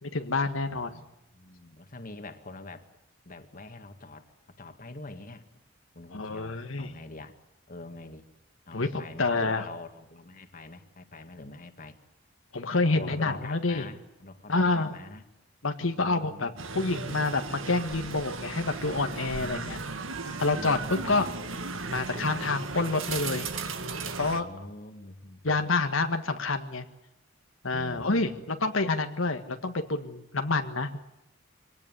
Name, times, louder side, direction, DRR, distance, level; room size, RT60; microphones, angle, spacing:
voice 1, 0.0-1.0 6.1-6.9 8.7-9.6 12.5-13.9 14.5-14.9 15.6-19.8 20.4-21.3 21.9-23.5 24.2-24.4 25.4-26.8 27.6-31.0, left 3 dB, 90° left, 6 dB, 1.7 m, -28 dB
voice 2, 0.7-1.0 1.3-2.9 3.3-4.3 4.6-5.4 5.9-7.3 7.7-8.2 8.7-12.0 12.9-15.2 16.0-16.7 19.3-19.9 20.6-21.4 22.1-22.3 24.3-25.6 27.7-28.3, left 2 dB, 45° left, 7 dB, 2.1 m, -44 dB
sound 1, 16.6-24.4, right 4 dB, 90° right, 1.9 m, -36 dB
24.5 x 18.5 x 9.8 m, 0.90 s
head